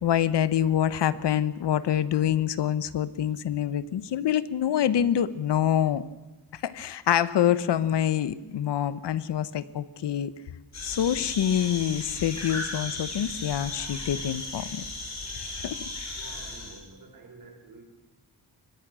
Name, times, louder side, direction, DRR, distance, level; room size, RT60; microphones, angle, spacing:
voice 1, 0.0-6.0 6.5-10.3 10.8-14.8 15.6-15.8, left 10 dB, 85° left, 16 dB, 1.1 m, -26 dB
sound 1, 10.7-16.8, left 2 dB, 40° left, 5.3 m, -36 dB
voice 2, 16.2-17.9, right 3 dB, 55° right, 3 dB, 5.4 m, -49 dB
24.0 x 20.5 x 6.2 m, 1.2 s
wide cardioid pair, 180°, 41 cm